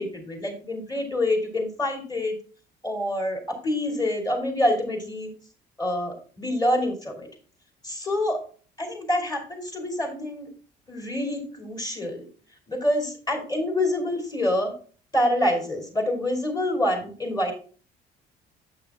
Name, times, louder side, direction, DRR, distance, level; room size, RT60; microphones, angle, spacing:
voice 1, 0.0-2.4 2.8-5.3 5.8-7.3 7.8-8.4 8.8-10.5 10.9-12.3 12.7-14.7 15.1-17.5, left 1 dB, 25° left, 3 dB, 2.6 m, -26 dB
7.6 x 5.9 x 3.5 m, 0.41 s
cardioid pair, 110°, 17 cm